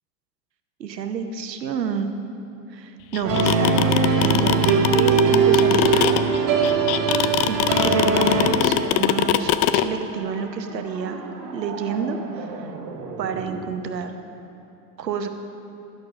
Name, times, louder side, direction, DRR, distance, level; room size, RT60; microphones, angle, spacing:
voice 1, 0.8-2.1 2.7-6.2 7.5-7.6 7.8-11.2 11.5-12.7 13.2-14.1 15.0-15.3, right 6 dB, 80° right, 7 dB, 0.9 m, -29 dB
sound 1, 3.1-9.8, left 14 dB, 40° left, 0.4 m, -20 dB
sound 2, 3.2-8.5, right 5 dB, 45° right, 2.3 m, -20 dB
sound 3, 7.4-13.7, right 5 dB, 65° right, 1.3 m, -39 dB
11.5 x 6.5 x 6.1 m, 2.9 s
figure-of-eight pair, 80°, 49 cm